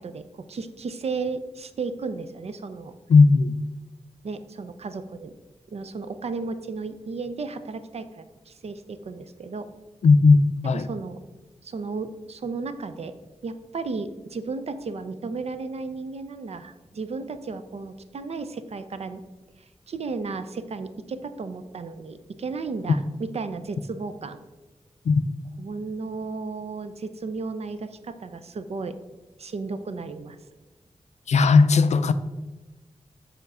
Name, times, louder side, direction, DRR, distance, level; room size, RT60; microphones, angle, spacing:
voice 1, 0.0-2.9 4.2-5.4 5.7-9.7 10.7-11.2 11.6-13.1 13.4-19.2 19.9-24.4 25.6-28.9 29.4-30.4, right 4 dB, 65° right, 0.5 m, -34 dB
voice 2, 3.1-3.5 10.0-10.9 25.1-25.2 31.3-32.1, left 4 dB, 75° left, 0.4 m, -16 dB
6.9 x 4.4 x 4.8 m
wide cardioid pair, 120°, 12 cm